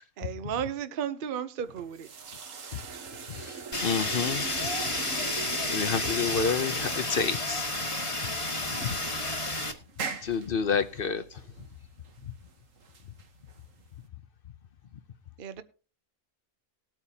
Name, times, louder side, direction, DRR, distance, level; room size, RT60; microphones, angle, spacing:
voice 1, 0.0-2.1 15.4-15.6, right 8 dB, 45° right, 0.9 m, -34 dB
sound 1, 1.6-14.1, right 5 dB, 65° right, 1.6 m, -42 dB
voice 2, 3.3-4.7 5.7-7.7 8.8-9.0 10.2-11.4, left 6 dB, 50° left, 0.8 m, -29 dB
Fire, 3.7-9.7, left 2 dB, 20° left, 1.5 m, -31 dB
19.5 x 9.0 x 2.8 m
omnidirectional pair, 1.5 m